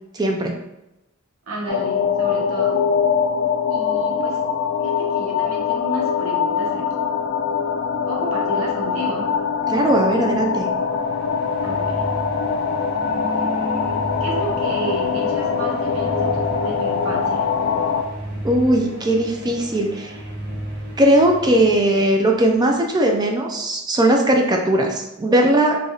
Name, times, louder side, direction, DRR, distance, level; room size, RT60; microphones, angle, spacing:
voice 1, 0.1-0.5 9.7-10.7 18.4-20.1 21.0-25.8, right 1 dB, 20° right, 1 dB, 0.4 m, -18 dB
voice 2, 1.5-2.8 3.7-4.4 4.8-7.0 8.1-9.3 11.6-12.0 13.0-17.5, right 1 dB, 85° right, -2 dB, 1.0 m, -32 dB
sound 1, 1.7-18.0, left 6 dB, 55° left, 0.3 m, -22 dB
sound 2, 10.8-22.6, equal, 50° right, 0.8 m, -34 dB
3.3 x 2.4 x 3.9 m, 0.93 s
head